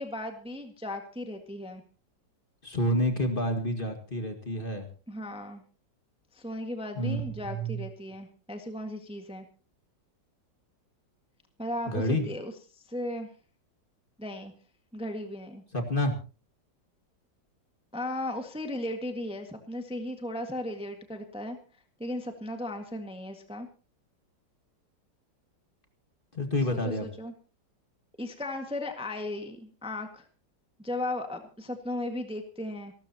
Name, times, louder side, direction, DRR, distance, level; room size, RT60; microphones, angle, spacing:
voice 1, 0.0-1.8 5.1-5.6 6.3-9.4 11.6-13.3 14.2-14.5 14.9-15.6 17.9-21.6 22.0-23.7 26.7-27.3 28.2-30.3 30.8-32.9, left 1 dB, 5° right, 5 dB, 1.5 m, -36 dB
voice 2, 2.6-4.9 6.9-7.9 11.9-12.3 15.7-16.1 26.3-27.1, equal, 30° left, 5 dB, 2.1 m, -29 dB
28.0 x 13.0 x 2.9 m, 0.34 s
omnidirectional pair, 2.0 m